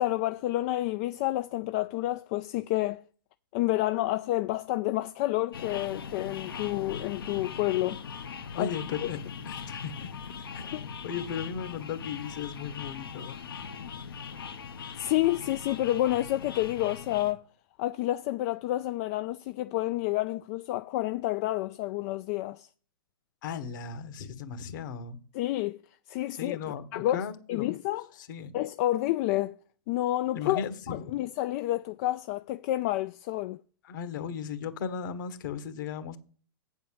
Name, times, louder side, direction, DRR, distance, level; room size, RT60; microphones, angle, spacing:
voice 1, 0.0-3.0 3.5-8.0 8.4-8.7 10.6-10.9 15.0-17.4 17.8-22.7 25.3-25.8 26.1-26.6 26.9-27.2 27.5-28.1 28.5-29.5 29.9-30.6 30.9-33.6, left 15 dB, 40° left, 0.4 m, -29 dB
sound 1, 5.5-17.3, left 6 dB, 75° left, 1.2 m, -40 dB
voice 2, 8.5-9.2 9.4-10.1 10.5-10.8 11.0-13.7 23.4-25.2 26.3-27.7 28.2-28.5 30.3-31.1 33.8-36.2, left 7 dB, 55° left, 1.5 m, -36 dB
8.4 x 4.4 x 7.2 m
hypercardioid pair, 125°, 12 cm